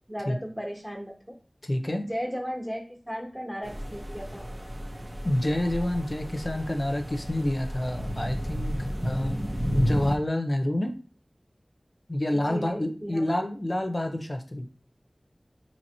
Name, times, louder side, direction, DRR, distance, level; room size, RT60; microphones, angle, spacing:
voice 1, 0.1-1.1 2.0-4.4 9.3-9.5 12.5-13.4, equal, 10° right, 1 dB, 1.1 m, -35 dB
voice 2, 1.6-2.0 5.2-9.4 9.7-10.9 12.1-14.7, left 1 dB, 45° left, 5 dB, 0.5 m, -28 dB
sound 1, 3.6-10.2, equal, 50° right, 0.8 m, -32 dB
2.9 x 2.8 x 4.2 m, 0.39 s
wide cardioid pair, 40°, 0 cm